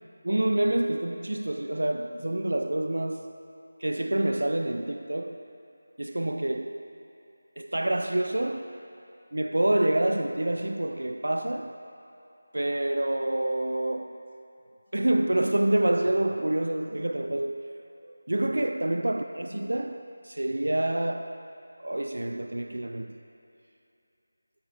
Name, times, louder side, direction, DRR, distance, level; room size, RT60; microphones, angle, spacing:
voice 1, 0.2-3.4 3.8-5.5 6.0-6.9 7.6-8.8 9.3-11.8 12.5-14.2 14.9-17.7 18.0-21.4 21.8-23.2, right 1 dB, 75° right, 0.3 m, -27 dB
13.0 x 9.4 x 2.8 m
figure-of-eight pair, 165°, 0 cm